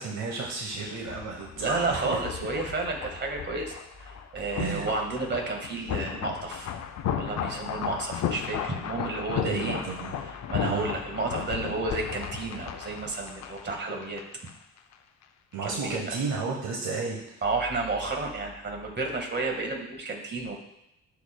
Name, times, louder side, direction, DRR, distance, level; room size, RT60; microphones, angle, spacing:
voice 1, 0.0-2.2 4.6-4.9 9.4-10.2 10.6-10.9 15.5-17.4, right 4 dB, 70° right, -1 dB, 1.2 m, -32 dB
sound 1, 0.7-14.5 14.8-14.9, left 9 dB, 60° left, 0.6 m, -35 dB
voice 2, 1.6-6.7 7.2-9.8 10.3-14.2 15.6-16.2 17.4-20.6, right 3 dB, 35° right, 1 dB, 1.8 m, -31 dB
12.0 x 4.8 x 2.3 m, 0.81 s
cardioid pair, 90°, 30 cm